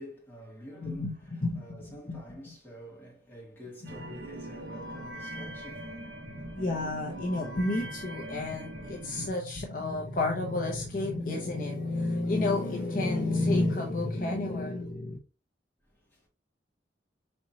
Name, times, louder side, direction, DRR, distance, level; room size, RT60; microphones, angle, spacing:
voice 1, 0.0-6.1 6.4-6.6 15.8-16.3, equal, 10° left, 2.4 m, -47 dB
voice 2, 0.8-1.2 1.4-2.2 6.5-15.2, left 2 dB, 50° left, 0.8 m, -30 dB
sound 1, 3.8-9.3, right 1 dB, 70° right, 1.1 m, -41 dB
4.4 x 4.4 x 2.7 m
head